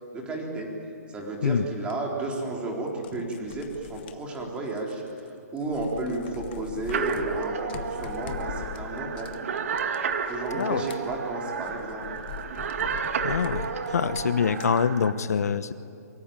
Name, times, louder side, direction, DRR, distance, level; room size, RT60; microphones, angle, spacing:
voice 1, 0.1-0.7 1.1-5.0 5.5-9.3 10.3-12.0, right 2 dB, 10° right, -1 dB, 4.1 m, -32 dB
sound 1, 1.9-2.0 2.9-5.3 5.6-14.8, left 8 dB, 35° left, 1.4 m, -42 dB
sound 2, 6.9-15.1, right 6 dB, 55° right, 2.1 m, -32 dB
voice 2, 13.2-13.6 13.9-15.7, left 6 dB, 70° left, 13 dB, 1.0 m, -25 dB
23.5 x 23.5 x 9.0 m, 2.6 s
hypercardioid pair, 155°, 9 cm